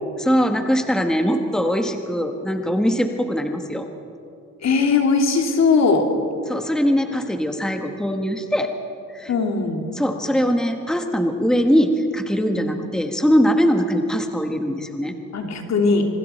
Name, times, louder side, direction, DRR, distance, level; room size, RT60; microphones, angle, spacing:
voice 1, 0.2-3.9 6.5-8.7 9.1-9.3 9.9-15.2, equal, ahead, 5 dB, 1.5 m, -21 dB
voice 2, 4.6-6.1 9.3-9.9 12.5-12.7 15.3-16.1, left 4 dB, 60° left, 3 dB, 2.9 m, -19 dB
26.0 x 23.5 x 4.5 m, 2.7 s
cardioid pair, 90°, 30 cm